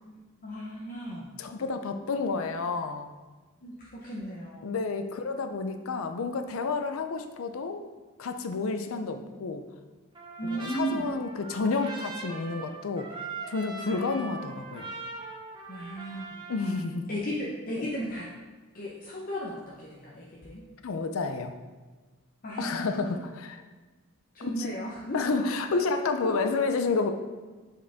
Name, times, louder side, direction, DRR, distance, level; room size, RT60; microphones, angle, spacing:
voice 1, 0.0-1.3 3.6-4.7 10.4-11.1 13.8-14.3 15.7-16.3 17.1-18.3 18.7-20.6 22.4-23.2 24.3-25.7 26.2-26.4, right 1 dB, 40° left, -4 dB, 0.8 m, -35 dB
voice 2, 1.4-3.1 4.6-7.9 8.2-9.6 10.4-13.1 13.5-14.9 16.5-17.1 17.8-17.9 20.8-21.5 22.6-23.6 24.4-24.7 25.1-27.1, left 4 dB, 80° left, 7 dB, 0.5 m, -30 dB
Trumpet, 10.2-16.9, right 3 dB, 25° right, 1.0 m, -41 dB
7.4 x 4.8 x 3.4 m, 1.3 s
head